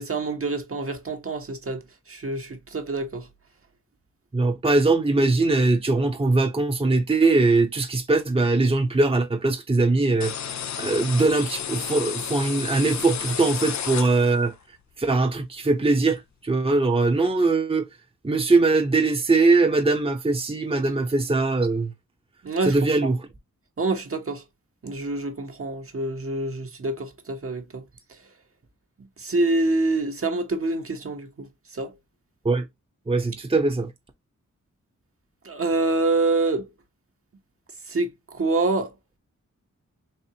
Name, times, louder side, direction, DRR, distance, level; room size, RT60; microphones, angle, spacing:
voice 1, 0.0-1.8 2.1-3.3 22.4-23.1 23.8-24.4 24.8-27.8 29.2-31.5 31.7-31.9 35.4-36.7 37.9-38.9, right 2 dB, 45° right, 1.0 m, -26 dB
voice 2, 4.3-10.3 10.8-14.5 15.0-17.9 18.2-21.9 22.6-23.3 32.4-32.7 33.1-33.9, right 3 dB, 20° right, 0.8 m, -21 dB
sound 1, 10.2-14.5, left 8 dB, 65° left, 0.5 m, -32 dB
4.3 x 2.9 x 2.8 m
cardioid pair, 60°, 30 cm